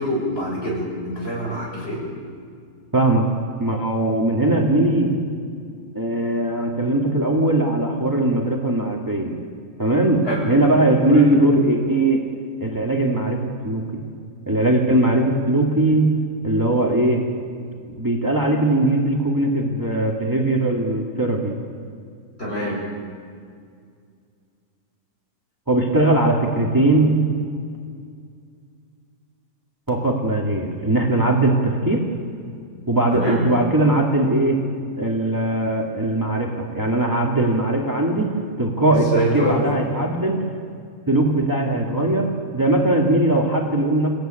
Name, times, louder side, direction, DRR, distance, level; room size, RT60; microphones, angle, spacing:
voice 1, 0.0-2.0 10.3-10.5 11.0-11.3 22.4-22.8 33.1-33.5 38.9-39.6, equal, 45° left, -3 dB, 7.0 m, -25 dB
voice 2, 2.9-3.2 3.6-5.1 5.9-9.4 9.8-12.2 12.6-13.8 14.5-16.1 16.4-17.2 18.0-21.6 25.7-27.2 29.9-32.0 32.9-34.6 35.0-39.1 39.3-40.4 41.1-42.3 42.5-44.1, right 1 dB, 15° right, -1 dB, 2.3 m, -20 dB
28.5 x 15.0 x 9.1 m, 2.2 s
omnidirectional pair, 1.5 m